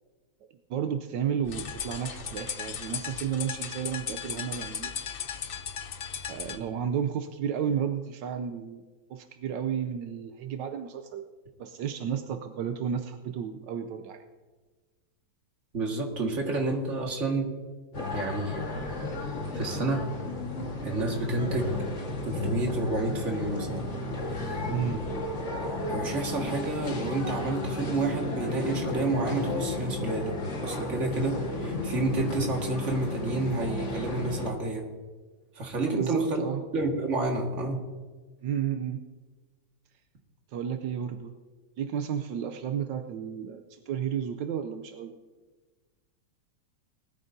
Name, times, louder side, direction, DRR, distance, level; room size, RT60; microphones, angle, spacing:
voice 1, 0.7-4.9 6.3-8.8 9.1-11.3 11.6-14.2 24.7-25.1 35.8-36.6 38.4-39.0 40.5-41.3 41.8-45.1, right 8 dB, 80° right, 7 dB, 1.4 m, -32 dB
sound 1, 1.5-6.6, left 7 dB, 80° left, 0.5 m, -36 dB
voice 2, 15.7-17.5 18.1-18.9 19.5-20.1 20.8-21.8 22.3-23.8 25.9-34.9 35.6-36.4 36.7-37.8, right 2 dB, 40° right, 1 dB, 2.1 m, -29 dB
sound 2, 17.9-34.5, left 2 dB, 40° left, 1.9 m, -33 dB
20.0 x 13.5 x 2.7 m, 1.3 s
omnidirectional pair, 1.9 m